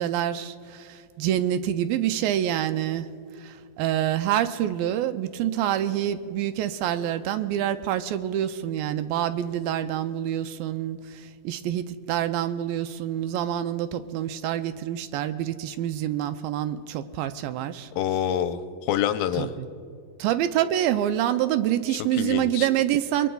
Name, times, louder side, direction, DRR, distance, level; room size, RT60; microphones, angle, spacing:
voice 1, 0.0-3.1 3.4-17.9 19.4-19.7 20.2-23.3, right 11 dB, 85° right, 11 dB, 2.3 m, -27 dB
voice 2, 18.0-19.5 22.1-22.7, left 10 dB, 90° left, 9 dB, 2.4 m, -26 dB
27.5 x 21.0 x 2.3 m, 2.3 s
omnidirectional pair, 4.2 m